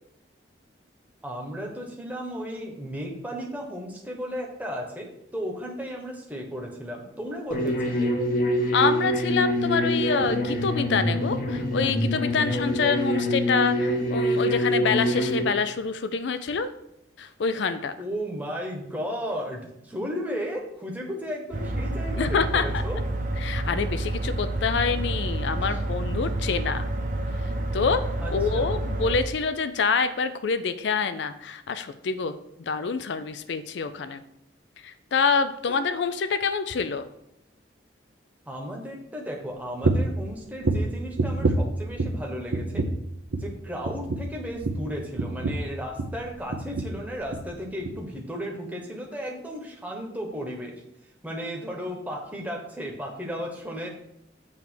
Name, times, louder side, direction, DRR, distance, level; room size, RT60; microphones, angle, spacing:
voice 1, 1.2-8.1 18.0-23.0 25.6-25.8 28.2-28.7 35.7-35.8 38.5-42.9 43.4-50.8 51.2-53.9, equal, 10° right, 0 dB, 1.0 m, -34 dB
sound 1, 7.5-15.4, equal, 45° left, 1.1 m, -25 dB
voice 2, 8.7-16.7 17.2-17.9 22.2-22.8 23.4-26.9 27.7-28.0 28.3-34.2 34.8-37.0, left 5 dB, 70° left, 11 dB, 0.4 m, -26 dB
sound 2, 21.5-29.2, right 1 dB, 45° right, 0.7 m, -29 dB
sound 3, 39.8-40.2 40.6-42.2 42.5-43.1 43.3-43.6 43.8-46.2 46.5-47.0 47.3-47.5 47.8-48.0, right 2 dB, 85° right, 0.6 m, -27 dB
7.1 x 3.4 x 6.2 m, 0.79 s
head